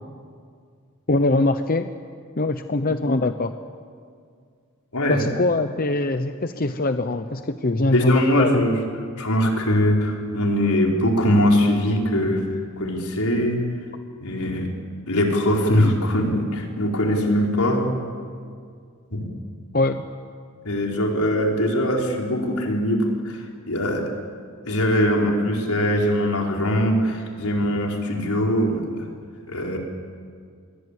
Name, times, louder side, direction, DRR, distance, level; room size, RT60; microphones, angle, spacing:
voice 1, 1.1-1.9 2.4-3.5 5.1-8.6 19.7-20.0, left 2 dB, 40° left, 8 dB, 0.8 m, -22 dB
voice 2, 7.9-8.8 9.2-12.4 12.8-13.6 14.2-14.7 15.1-17.9 19.1-19.3 20.6-24.1 24.6-29.1 29.5-29.8, equal, 80° left, 0 dB, 4.7 m, -21 dB
28.0 x 22.5 x 8.4 m, 2.1 s
head